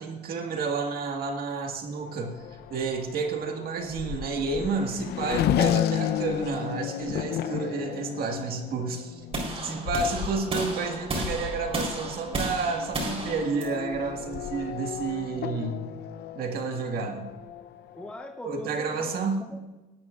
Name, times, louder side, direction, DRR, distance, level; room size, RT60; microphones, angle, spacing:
voice 1, 0.0-2.4 2.7-9.2 9.6-15.9 16.4-17.3 18.4-19.4, right 4 dB, 65° right, 3 dB, 1.8 m, -30 dB
Race car auto racing / Accelerating revving vroom, 1.9-18.1, left 10 dB, 70° left, 0.7 m, -33 dB
sound 1, 9.3-15.4, right 2 dB, 35° right, 4.0 m, -34 dB
voice 2, 17.9-19.6, left 2 dB, 5° left, 3 dB, 1.0 m, -41 dB
18.0 x 12.0 x 2.5 m, 1.1 s
cardioid pair, 110°, 17 cm